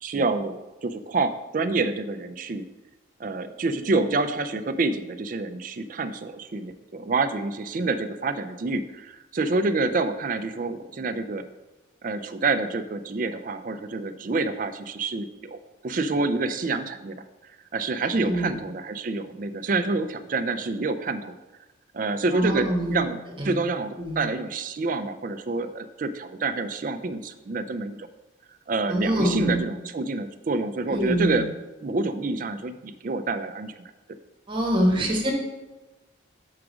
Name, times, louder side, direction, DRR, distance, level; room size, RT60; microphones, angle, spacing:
voice 1, 0.0-2.7 3.2-11.4 12.0-15.6 15.8-17.2 17.7-21.4 21.9-23.2 23.4-28.1 28.7-31.5 31.8-33.7 34.9-35.1, right 3 dB, 40° right, 9 dB, 0.4 m, -27 dB
voice 2, 18.1-18.5 22.3-23.0 23.4-23.5 24.0-24.2 28.9-29.6 30.9-31.4 34.5-35.3, equal, 25° right, -1 dB, 1.2 m, -24 dB
4.9 x 4.8 x 6.1 m, 1.1 s
head